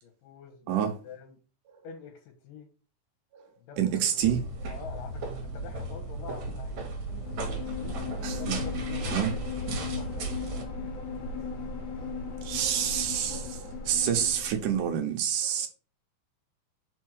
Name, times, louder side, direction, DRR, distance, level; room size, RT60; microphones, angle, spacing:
voice 1, 0.0-1.4 1.8-2.7 3.6-4.2 4.7-6.9 7.4-8.0 8.3-10.4, left 6 dB, 85° left, 2.8 m, -47 dB
voice 2, 3.8-4.4 8.2-8.6 9.1-9.3 12.4-15.7, right 9 dB, 75° right, 2.5 m, -28 dB
sound 1, 4.2-10.6, right 2 dB, 60° right, 2.5 m, -36 dB
sound 2, 7.1-14.9, left 4 dB, 55° left, 2.6 m, -36 dB
5.4 x 4.6 x 6.3 m
omnidirectional pair, 3.8 m